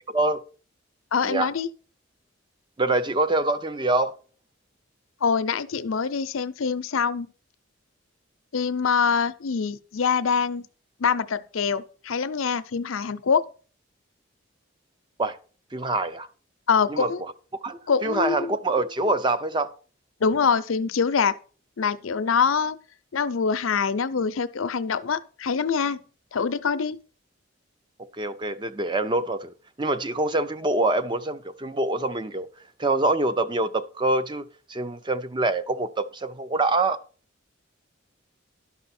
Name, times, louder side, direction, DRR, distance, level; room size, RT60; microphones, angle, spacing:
voice 1, 0.1-0.4 1.2-1.5 2.8-4.2 15.2-15.4 15.7-16.3 16.9-17.3 17.6-19.7 28.1-32.5 32.8-37.0, right 2 dB, 25° right, 0.5 m, -25 dB
voice 2, 1.1-1.7 5.2-7.3 8.5-10.7 11.0-13.4 16.7-17.2 17.9-18.5 20.2-21.3 21.8-22.8 23.1-26.0 26.3-27.0, left 6 dB, 80° left, 0.6 m, -24 dB
11.5 x 5.6 x 4.2 m
head